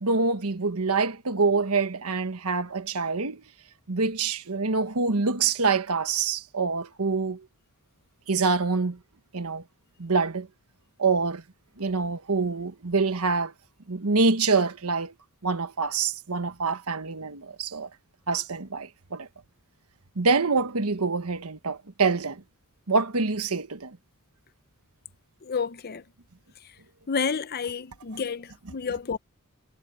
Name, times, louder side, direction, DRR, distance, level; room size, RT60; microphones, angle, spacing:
voice 1, 0.0-3.4 3.9-7.4 8.3-9.0 9.3-9.6 10.0-10.5 11.0-11.4 11.8-13.5 13.9-15.1 15.4-17.9 18.3-19.3 20.2-22.4 22.9-24.0, right 4 dB, 80° right, 1.2 m, -26 dB
voice 2, 25.4-26.0 27.1-29.2, left 5 dB, 45° left, 0.7 m, -30 dB
head